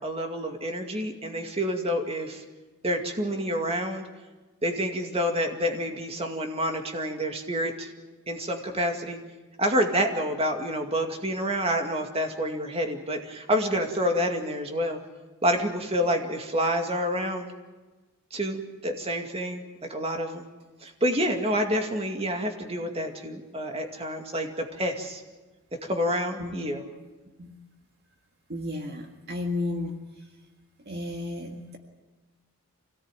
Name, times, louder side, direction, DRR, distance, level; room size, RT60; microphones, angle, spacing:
voice 1, 0.0-2.4 2.8-4.1 4.6-7.9 8.3-9.2 9.6-15.0 15.4-17.5 18.3-19.6 19.9-20.5 20.8-25.2 25.8-26.8, equal, 25° right, 4 dB, 2.2 m, -28 dB
voice 2, 28.5-30.0 30.9-31.8, left 2 dB, 50° right, 3 dB, 1.8 m, -33 dB
26.0 x 18.0 x 9.1 m, 1.2 s
head